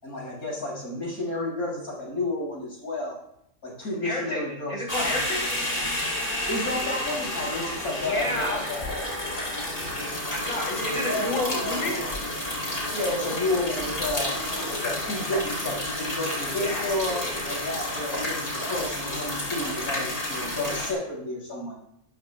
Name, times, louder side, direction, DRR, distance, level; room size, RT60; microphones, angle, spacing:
voice 1, 0.0-3.2 3.6-5.2 6.5-9.0 12.9-14.4 14.7-21.7, left 2 dB, 85° left, -3 dB, 7.0 m, -31 dB
voice 2, 4.0-5.4 8.0-8.6 10.3-12.0 16.5-16.9, left 1 dB, 60° left, -2 dB, 4.5 m, -30 dB
sound 1, 4.9-20.9, left 1 dB, 40° left, 4.3 m, -30 dB
18.5 x 13.5 x 2.4 m, 0.77 s
omnidirectional pair, 1.6 m